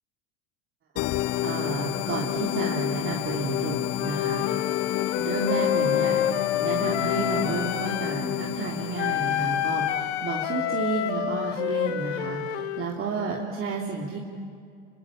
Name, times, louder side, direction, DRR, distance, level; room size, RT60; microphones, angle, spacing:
sound 1, 1.0-10.3, left 16 dB, 45° left, 0.6 m, -30 dB
voice 1, 1.1-4.8 5.2-6.2 6.6-14.2, right 4 dB, 40° right, -2 dB, 3.3 m, -31 dB
Wind instrument woodwind instrument, 4.0-8.2 9.0-12.9, left 11 dB, 80° left, 1.2 m, -28 dB
27.0 x 22.0 x 8.7 m, 2.2 s
hypercardioid pair, 85°, 34 cm